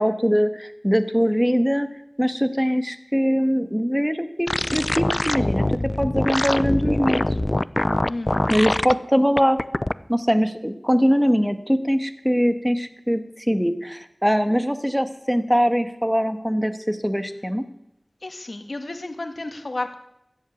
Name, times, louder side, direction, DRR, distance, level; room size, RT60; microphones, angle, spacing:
voice 1, 0.0-1.9 2.2-5.7 6.0-7.2 8.5-9.6 10.1-17.6, equal, 5° right, 10 dB, 1.3 m, -22 dB
sound 1, 4.5-8.9 9.4-9.9, left 1 dB, 35° left, 0.4 m, -23 dB
voice 2, 8.1-8.5 18.2-20.0, left 2 dB, 75° left, 7 dB, 1.7 m, -32 dB
14.0 x 8.1 x 9.2 m, 0.82 s
wide cardioid pair, 55°, 0 cm